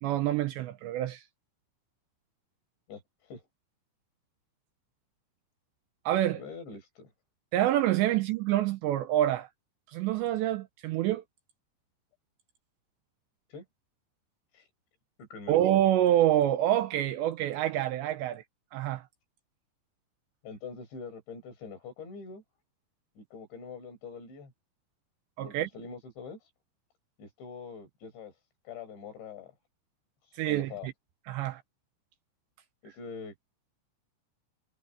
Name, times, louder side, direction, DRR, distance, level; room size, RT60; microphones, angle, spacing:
voice 1, 0.0-1.2 6.1-6.4 7.5-9.5 9.9-11.2 15.5-18.4 18.7-19.1 25.4-25.7 30.3-30.9 31.3-31.6, right 13 dB, 80° right, 2.7 m, -27 dB
voice 2, 6.3-7.1 13.5-13.6 14.5-14.7 15.2-15.6 20.4-22.4 23.2-24.5 25.4-26.4 27.2-28.3 28.7-29.5 30.4-30.9 32.8-33.3, left 5 dB, 65° left, 7.9 m, -44 dB
omnidirectional pair, 5.7 m